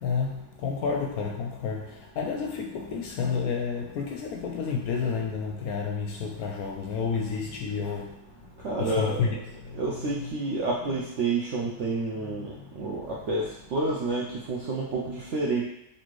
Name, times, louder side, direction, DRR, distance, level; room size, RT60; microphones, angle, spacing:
voice 1, 0.0-8.2 8.8-9.4 12.8-13.0, left 5 dB, 70° left, 1 dB, 0.9 m, -30 dB
voice 2, 8.6-9.3 9.7-13.5 13.7-15.6, right 3 dB, 65° right, -5 dB, 0.7 m, -29 dB
4.2 x 2.8 x 3.0 m, 0.81 s
omnidirectional pair, 1.8 m